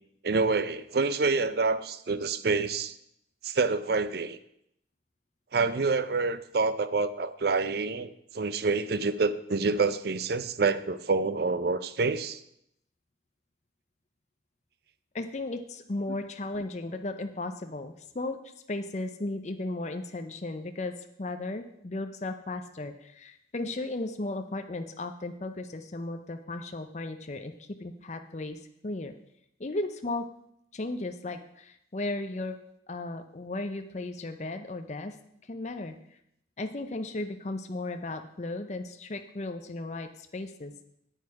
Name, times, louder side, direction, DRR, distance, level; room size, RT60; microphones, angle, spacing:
voice 1, 0.2-2.9 3.4-4.4 5.5-12.4, right 4 dB, 55° right, 14 dB, 0.5 m, -27 dB
voice 2, 15.1-18.4 18.7-29.1 29.6-30.3 30.7-32.6 32.9-35.2 35.4-36.0 36.6-40.7, left 2 dB, 40° left, 7 dB, 0.6 m, -35 dB
8.9 x 8.3 x 4.8 m, 0.75 s
head